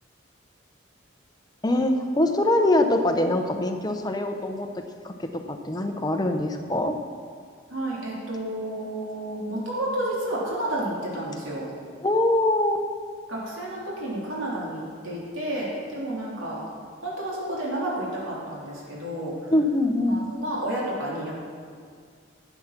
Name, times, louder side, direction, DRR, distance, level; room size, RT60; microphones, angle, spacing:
voice 1, 1.6-4.7 5.0-7.0 12.0-12.8 19.5-20.2, left 1 dB, 20° left, 5 dB, 0.7 m, -23 dB
voice 2, 7.7-11.7 13.3-16.6 17.0-19.4 20.1-21.4, right 1 dB, 85° right, -5 dB, 3.1 m, -31 dB
12.0 x 8.1 x 5.9 m, 2.1 s
head